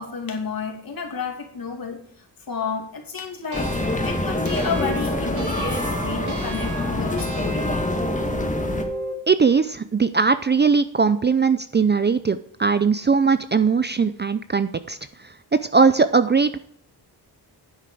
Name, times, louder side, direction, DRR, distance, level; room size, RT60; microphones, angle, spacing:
voice 1, 0.0-3.7 4.0-7.7, left 5 dB, 55° left, 3 dB, 2.5 m, -31 dB
sound 1, 3.5-8.8, left 2 dB, 20° left, 1.5 m, -26 dB
sound 2, 3.5-9.2, right 2 dB, 45° right, 1.7 m, -32 dB
voice 2, 9.3-16.6, right 5 dB, 25° right, 12 dB, 0.4 m, -20 dB
9.9 x 7.7 x 4.9 m, 0.65 s
wide cardioid pair, 120°, 41 cm